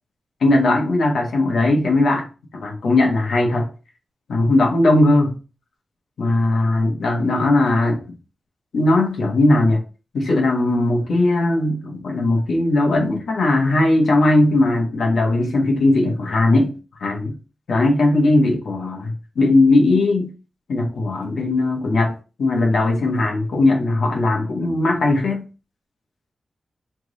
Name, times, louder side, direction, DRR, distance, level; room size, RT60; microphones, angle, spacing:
voice 1, 0.4-2.3 2.5-3.7 4.3-5.4 6.2-8.0 8.7-9.8 10.1-16.7 17.0-17.3 17.7-20.3 20.7-25.4, left 2 dB, 85° left, 1.3 m, -18 dB
3.4 x 3.2 x 3.9 m
wide cardioid pair, 90°, 0 cm